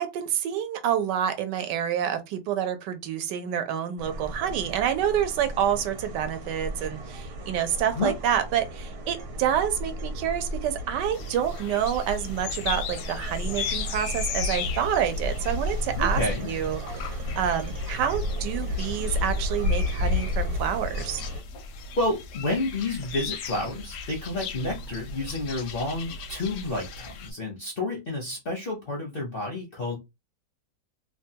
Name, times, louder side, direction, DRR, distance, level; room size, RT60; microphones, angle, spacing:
voice 1, 0.0-16.2 16.5-21.2, right 9 dB, 85° right, 1.2 m, -28 dB
sound 1, 4.0-21.4, left 1 dB, 60° right, 1.2 m, -32 dB
sound 2, 11.1-27.3, left 5 dB, 80° left, 1.2 m, -37 dB
voice 2, 16.0-16.5 22.0-30.0, left 2 dB, 60° left, 0.6 m, -30 dB
3.2 x 2.2 x 2.7 m
omnidirectional pair, 1.8 m